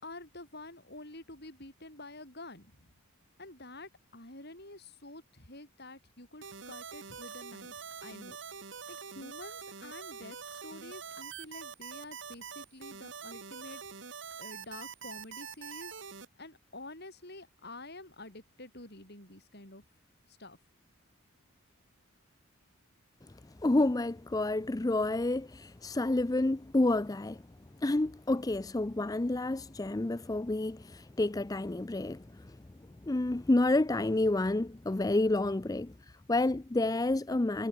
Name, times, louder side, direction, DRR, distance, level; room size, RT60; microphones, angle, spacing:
voice 1, 0.0-2.9 3.4-8.4 8.9-13.8 14.4-16.0 16.4-19.8 20.3-20.6, left 2 dB, 50° left, 7.6 m, -48 dB
sound 1, 6.4-16.3, right 6 dB, 55° right, 1.5 m, -45 dB
voice 2, 23.6-27.4 27.8-32.6 33.0-37.7, left 2 dB, 15° left, 0.4 m, -29 dB
head